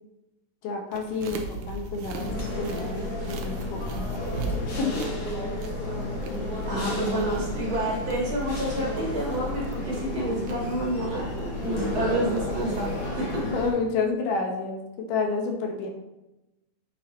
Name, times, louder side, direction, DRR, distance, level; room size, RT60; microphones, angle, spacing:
voice 1, 0.6-4.2 4.8-5.5 13.4-14.8 15.1-15.9, left 4 dB, 85° left, 2 dB, 2.6 m, -30 dB
sound 1, 0.9-13.1, right 3 dB, 80° right, 2.1 m, -40 dB
sound 2, 2.2-13.7, left 1 dB, 50° left, 1.2 m, -32 dB
voice 2, 6.7-12.9 13.2-13.4, right 1 dB, 45° right, -4 dB, 2.1 m, -29 dB
8.5 x 4.4 x 3.9 m, 0.97 s
omnidirectional pair, 3.6 m